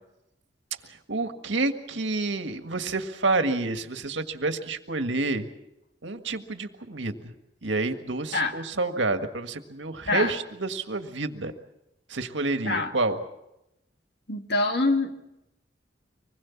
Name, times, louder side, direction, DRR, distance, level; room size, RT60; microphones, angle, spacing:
voice 1, 1.1-5.5 6.0-7.3 7.6-11.5 12.1-13.2, right 3 dB, 85° right, 7 dB, 1.8 m, -28 dB
voice 2, 14.3-15.1, left 2 dB, 60° left, 5 dB, 2.0 m, -25 dB
25.0 x 20.5 x 7.2 m, 0.88 s
head